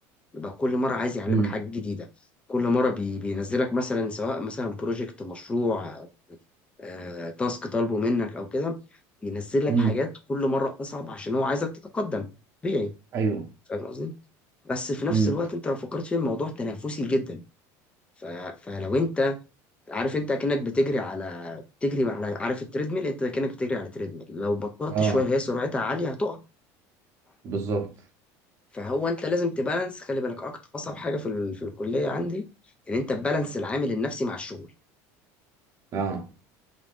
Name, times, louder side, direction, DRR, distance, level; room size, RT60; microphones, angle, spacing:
voice 1, 0.3-2.1 2.5-6.1 6.8-8.8 9.2-12.3 12.6-12.9 13.7-14.1 14.7-17.4 18.2-19.4 19.9-26.4 28.7-32.5 32.9-34.7, left 2 dB, 15° left, 0.4 m, -28 dB
voice 2, 13.1-13.5 15.1-15.3 24.9-25.2 27.4-27.9 35.9-36.2, right 5 dB, 40° right, 0.7 m, -25 dB
2.5 x 2.2 x 3.3 m
cardioid pair, 145°, 8 cm